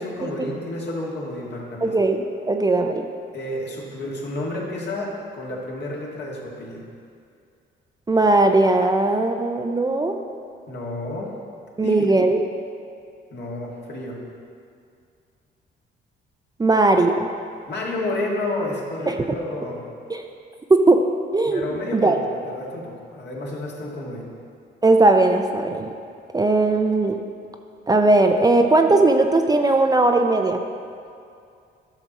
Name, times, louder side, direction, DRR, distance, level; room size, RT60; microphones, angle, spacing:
voice 1, 0.0-2.0 3.3-6.8 10.7-11.3 11.8-12.1 13.3-14.2 17.7-19.8 21.4-24.3, left 1 dB, 60° left, -3 dB, 2.0 m, -30 dB
voice 2, 1.8-3.1 8.1-10.2 11.8-12.4 16.6-17.3 19.1-19.2 20.1-20.3 20.7-21.0 21.3-21.6 21.9-22.2 24.8-25.9 26.3-27.2 27.9-30.6, right 2 dB, 20° right, 4 dB, 0.5 m, -18 dB
12.0 x 6.0 x 4.1 m, 2.4 s
cardioid pair, 90°, 20 cm